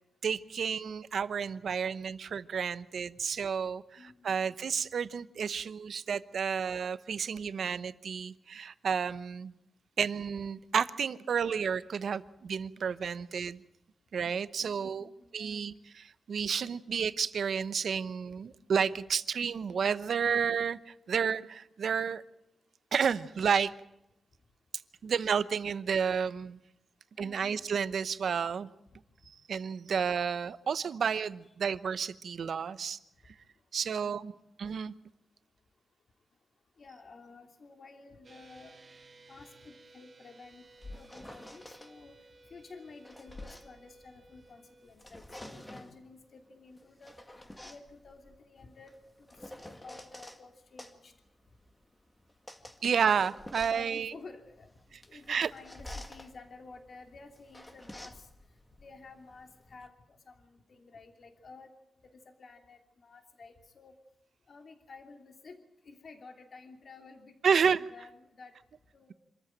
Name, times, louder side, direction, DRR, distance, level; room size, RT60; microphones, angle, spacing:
voice 1, 0.2-9.5 10.0-13.6 14.1-22.2 22.9-23.7 25.0-26.6 27.2-28.7 29.5-33.0 33.7-34.3 34.6-34.9 52.8-54.1 55.3-55.5 67.4-67.8, right 6 dB, 70° right, 14 dB, 0.9 m, -31 dB
voice 2, 4.0-4.4 14.6-15.6 27.2-27.6 33.8-34.3 36.8-38.8 39.3-40.6 40.9-42.2 42.5-47.1 47.6-51.1 53.5-54.7 55.0-58.3 58.8-61.7 62.0-63.9 64.5-65.6 65.8-68.5 68.9-69.1, left 4 dB, 50° left, 5 dB, 2.9 m, -52 dB
sound 1, 38.2-44.9, right 2 dB, 45° right, 2.4 m, -58 dB
sound 2, 40.5-41.9 42.7-44.5 44.9-46.0 46.8-50.4 50.8-59.9, left 1 dB, 10° left, 2.0 m, -49 dB
26.5 x 14.0 x 9.0 m, 0.83 s
wide cardioid pair, 130°, 0 cm